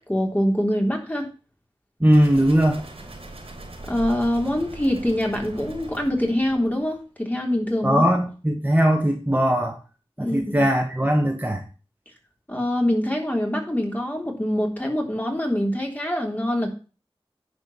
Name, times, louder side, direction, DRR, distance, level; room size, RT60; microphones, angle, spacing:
voice 1, 0.1-1.3 3.9-8.0 10.2-10.6 12.5-16.7, left 1 dB, 15° left, 1 dB, 3.5 m, -24 dB
voice 2, 2.0-2.8 7.8-9.8 10.2-11.6, equal, 15° right, 2 dB, 1.9 m, -20 dB
sound 1, 2.1-7.0, right 2 dB, 85° right, 3.3 m, -40 dB
10.5 x 5.1 x 7.4 m, 0.36 s
wide cardioid pair, 40°, 10 cm